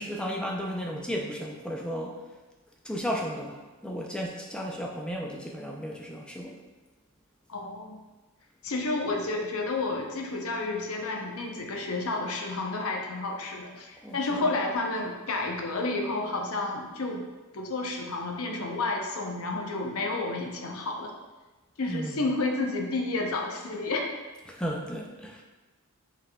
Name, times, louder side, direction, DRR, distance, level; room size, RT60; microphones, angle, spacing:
voice 1, 0.0-2.2 2.8-6.6 14.0-14.5 21.9-22.2 24.5-25.4, equal, 5° left, -1 dB, 0.3 m, -34 dB
voice 2, 7.5-8.0 8.6-17.3 17.5-21.1 21.8-24.1, left 2 dB, 70° left, 1 dB, 0.6 m, -31 dB
5.5 x 3.4 x 2.2 m, 1.2 s
head